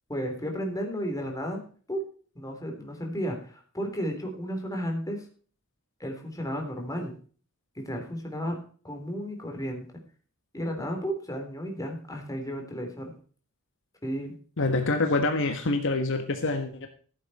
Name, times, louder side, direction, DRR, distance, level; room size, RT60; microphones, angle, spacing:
voice 1, 0.1-1.6 1.9-2.0 2.4-5.3 6.0-7.2 7.8-8.6 8.8-9.8 10.5-13.1 14.0-14.3, equal, 15° left, 2 dB, 3.5 m, -33 dB
voice 2, 14.6-16.9, left 2 dB, 60° left, 6 dB, 1.5 m, -26 dB
15.0 x 8.3 x 4.3 m, 0.42 s
head